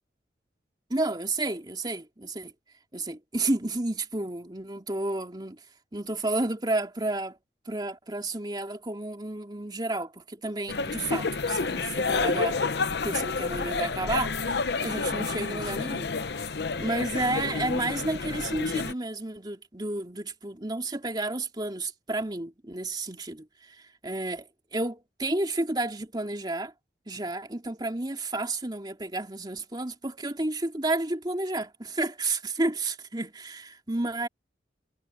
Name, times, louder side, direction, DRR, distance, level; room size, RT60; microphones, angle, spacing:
voice 1, 0.9-2.5 2.9-5.6 5.9-7.4 7.7-12.6 13.0-16.1 16.8-26.7 27.1-34.3, right 2 dB, 25° right, 2.7 m, -31 dB
sound 1, 10.7-18.9, left 4 dB, 70° left, 0.9 m, -29 dB
head